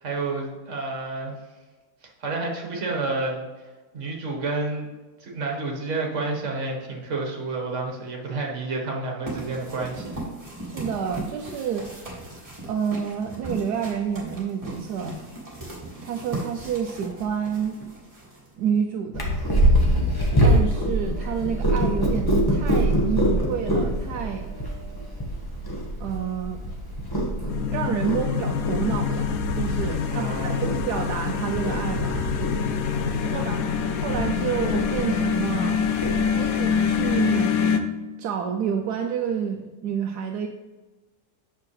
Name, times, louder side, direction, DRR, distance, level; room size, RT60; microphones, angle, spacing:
voice 1, 0.0-1.3 2.2-3.5 3.9-4.9 5.2-10.2 30.1-30.7 33.2-33.5, right 3 dB, 50° right, 0 dB, 1.7 m, -30 dB
sound 1, 9.3-18.8, right 1 dB, 20° right, 2.0 m, -38 dB
voice 2, 10.7-11.9 12.7-15.2 16.0-17.8 18.6-19.3 20.4-24.5 26.0-26.7 27.6-32.3 33.2-33.6 34.0-35.8 36.3-37.6 38.2-40.5, right 7 dB, 80° right, 4 dB, 1.1 m, -29 dB
Purr, 19.1-37.1, right 1 dB, 15° left, 1.2 m, -25 dB
sound 2, 27.5-37.8, left 6 dB, 65° left, 1.0 m, -25 dB
8.4 x 6.5 x 3.2 m, 1.2 s
omnidirectional pair, 1.8 m